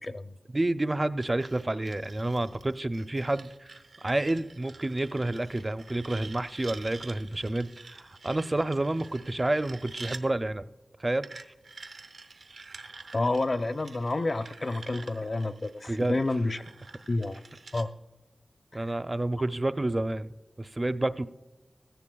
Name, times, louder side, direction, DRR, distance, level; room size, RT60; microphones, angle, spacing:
voice 1, 0.0-0.4 13.1-16.6 17.1-17.4 17.7-17.9 18.7-18.9, left 2 dB, 45° left, 10 dB, 0.6 m, -29 dB
voice 2, 0.5-10.6 11.0-11.3 15.9-16.2 18.7-21.3, right 2 dB, 30° right, 12 dB, 0.5 m, -29 dB
sound 1, 1.2-10.2 11.2-17.9, right 4 dB, 85° right, 0.8 m, -48 dB
17.0 x 14.5 x 2.3 m, 1.1 s
wide cardioid pair, 95°, 0 cm